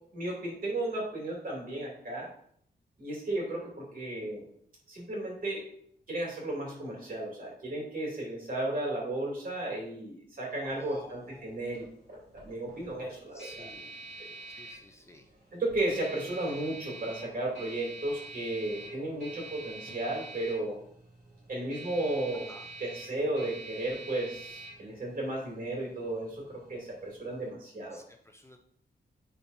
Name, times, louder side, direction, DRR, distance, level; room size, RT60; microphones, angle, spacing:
voice 1, 0.1-2.3 3.0-4.4 4.9-5.6 6.1-11.9 12.4-13.7 15.5-20.8 21.5-22.5 22.8-28.0, right 1 dB, 55° right, -2 dB, 2.7 m, -34 dB
voice 2, 10.6-11.6 13.3-13.9 14.5-15.3 22.5-22.7 27.9-28.6, left 1 dB, 15° left, 4 dB, 0.5 m, -51 dB
sound 1, 10.7-27.5, right 2 dB, 70° right, 2.8 m, -47 dB
11.0 x 4.3 x 2.7 m, 0.64 s
wide cardioid pair, 150°, 18 cm